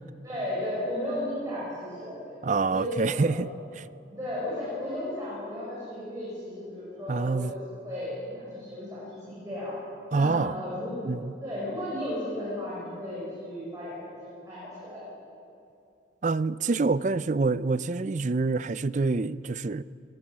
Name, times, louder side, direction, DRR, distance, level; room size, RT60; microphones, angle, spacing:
voice 1, 0.2-2.2 2.7-3.4 4.1-7.5 7.8-9.8 10.1-11.1 11.4-15.0, left 1 dB, 20° right, 6.5 m, -34 dB
voice 2, 2.4-3.5 3.8-3.9 7.1-7.5 10.1-10.6 11.1-11.3 16.2-19.8, right 3 dB, 40° right, 0.4 m, -26 dB
23.0 x 19.0 x 7.4 m
head